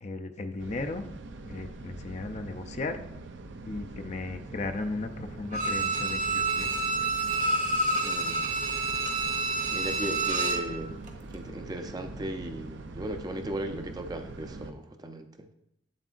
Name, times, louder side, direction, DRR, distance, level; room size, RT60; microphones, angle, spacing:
voice 1, 0.0-1.0 1.4-3.0 3.6-7.1, left 3 dB, 40° left, 7 dB, 0.5 m, -36 dB
sound 1, 0.6-14.7, right 2 dB, 90° right, 0.6 m, -43 dB
Bowed string instrument, 5.5-10.7 11.1-11.2, right 3 dB, 45° right, 1.0 m, -28 dB
voice 2, 8.0-8.4 9.7-15.5, right 1 dB, 20° right, 7 dB, 0.5 m, -37 dB
7.9 x 7.3 x 2.5 m, 0.81 s
head